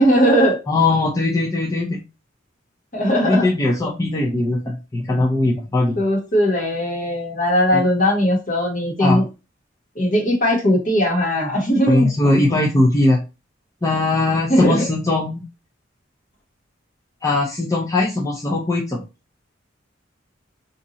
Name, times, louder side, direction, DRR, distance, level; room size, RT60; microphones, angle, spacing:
voice 1, 0.0-0.6 2.9-3.5 6.0-9.2 9.9-12.1 14.5-14.9, equal, 45° left, -1 dB, 1.4 m, -18 dB
voice 2, 0.7-2.0 3.2-6.0 7.7-7.8 9.0-9.2 11.9-13.2 13.8-15.4 17.2-19.0, left 2 dB, 15° left, -4 dB, 0.5 m, -19 dB
2.7 x 2.6 x 3.9 m, 0.29 s
head